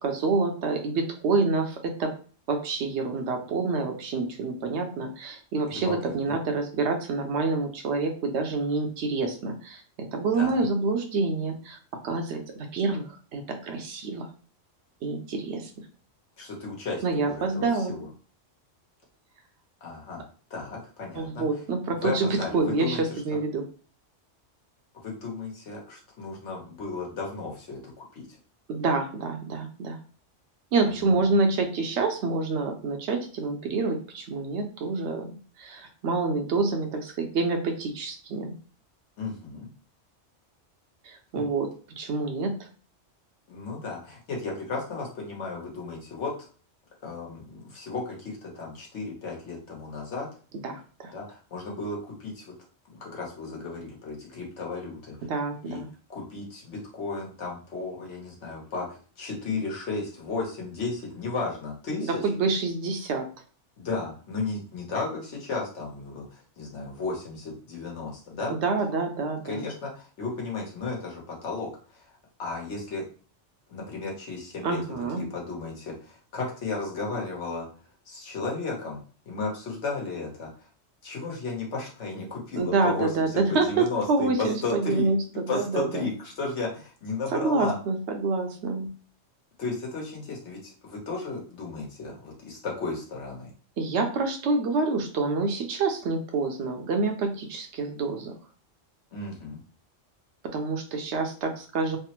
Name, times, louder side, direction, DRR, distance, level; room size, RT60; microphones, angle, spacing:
voice 1, 0.0-2.1 2.5-9.8 10.1-11.8 12.0-12.4 12.7-14.3 15.0-15.7 17.0-17.9 21.1-23.7 28.7-30.0 30.7-35.3 35.6-38.5 41.0-42.7 50.6-51.1 55.2-55.9 62.1-63.3 68.5-69.7 74.6-75.2 82.6-86.1 87.3-88.9 93.8-98.3 100.4-102.0, right 3 dB, 70° right, 4 dB, 0.8 m, -27 dB
voice 2, 5.7-6.3 10.3-10.6 16.4-18.1 19.8-20.2 20.5-21.4 22.0-23.2 25.0-28.3 30.8-31.2 39.2-39.7 41.3-41.5 43.5-46.3 47.0-50.3 51.1-52.5 52.9-55.2 55.6-55.8 56.1-62.1 63.8-68.6 69.4-72.0 72.4-73.0 73.7-77.7 78.1-80.5 81.0-85.1 85.5-87.7 89.6-93.5 99.1-99.6, left 3 dB, 70° left, -2 dB, 1.2 m, -34 dB
3.3 x 2.0 x 2.9 m, 0.40 s
omnidirectional pair, 1.3 m